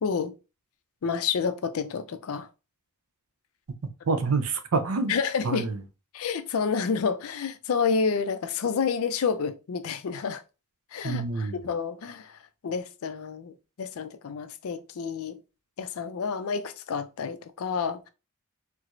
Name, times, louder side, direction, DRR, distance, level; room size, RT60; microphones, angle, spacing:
voice 1, 0.0-0.3 1.0-2.5 5.1-5.7 6.1-10.4 10.9-12.4 12.6-13.5 13.8-15.4 15.8-18.1, left 5 dB, 70° left, 0.4 m, -29 dB
voice 2, 4.1-5.1 5.4-5.8 11.0-11.6, right 4 dB, 75° right, 0.6 m, -27 dB
4.5 x 2.0 x 2.5 m
head